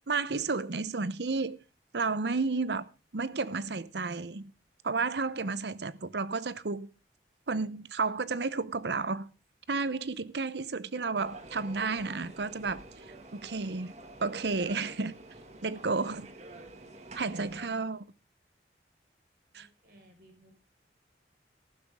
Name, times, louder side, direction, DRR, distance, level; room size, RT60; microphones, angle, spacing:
voice 1, 0.1-1.6 1.9-2.8 3.1-4.5 4.8-6.9 7.5-9.3 9.7-12.8 13.3-13.9 14.2-15.1 15.6-16.3 17.1-18.0 19.5-19.7, right 4 dB, 75° right, 0.8 m, -32 dB
sound 1, 11.2-17.7, right 1 dB, 40° right, 2.0 m, -48 dB
voice 2, 17.7-18.1 19.5-20.6, right 1 dB, 55° right, 5.2 m, -58 dB
14.5 x 12.5 x 3.6 m
head